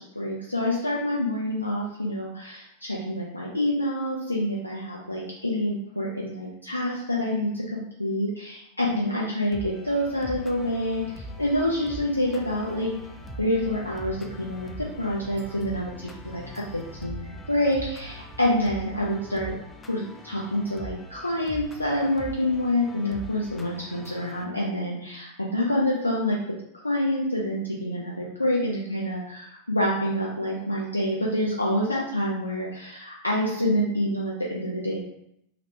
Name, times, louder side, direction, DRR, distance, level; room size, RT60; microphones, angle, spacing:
voice 1, 0.0-12.9 13.4-19.5 19.9-26.4 26.8-35.0, left 1 dB, 85° left, -4 dB, 0.4 m, -27 dB
sound 1, 9.5-24.4, equal, 15° left, 0.3 m, -43 dB
sound 2, 10.0-19.4, right 2 dB, 65° right, 0.6 m, -45 dB
2.9 x 2.1 x 2.8 m, 0.76 s
figure-of-eight pair, 90°, 0 cm